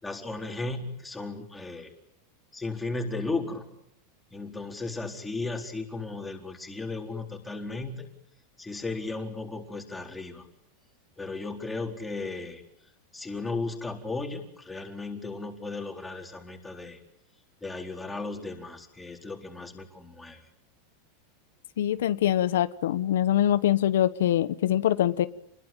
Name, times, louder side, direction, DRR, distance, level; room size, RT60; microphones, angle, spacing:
voice 1, 0.0-1.9 2.5-3.6 4.3-8.1 8.6-10.5 11.2-12.6 13.1-17.0 17.6-20.5, left 3 dB, 5° left, 2 dB, 4.3 m, -35 dB
voice 2, 21.8-25.3, left 11 dB, 85° left, 13 dB, 1.1 m, -24 dB
29.5 x 21.0 x 9.2 m, 0.70 s
supercardioid pair, 155°, 0 cm